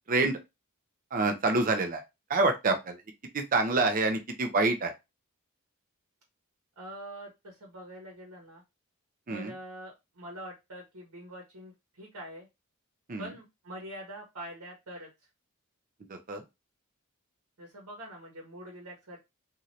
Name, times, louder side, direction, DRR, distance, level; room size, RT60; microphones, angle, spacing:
voice 1, 0.1-0.4 1.1-2.0 2.3-3.0 3.3-4.9 9.3-9.5 13.1-13.3 16.3-16.4, right 3 dB, 40° right, 5 dB, 0.5 m, -26 dB
voice 2, 6.8-8.6 9.3-12.5 13.2-15.1 17.6-19.2, right 1 dB, 75° right, -2 dB, 1.1 m, -44 dB
3.1 x 2.6 x 2.6 m, 0.23 s
head